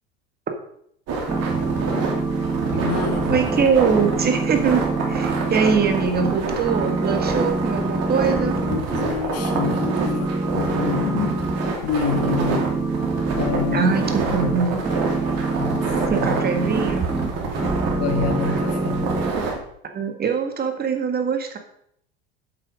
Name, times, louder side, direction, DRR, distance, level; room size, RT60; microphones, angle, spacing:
sound 1, 1.1-19.5, right 4 dB, 55° right, 2.9 m, -27 dB
sound 2, 1.3-6.4 6.6-9.1 9.4-11.7 12.1-17.3 17.5-19.3, right 3 dB, 10° right, 1.1 m, -25 dB
voice 1, 2.7-3.4 8.4-11.4 11.8-12.7 13.3-13.9 14.3-14.7 15.6-16.4 18.0-19.2, left 6 dB, 50° left, 8 dB, 1.4 m, -28 dB
voice 2, 3.3-8.6 13.7-14.8 16.1-17.1 19.9-21.6, right 6 dB, 30° right, 5 dB, 1.8 m, -22 dB
8.0 x 7.7 x 5.1 m, 0.68 s
hypercardioid pair, 75°, 32 cm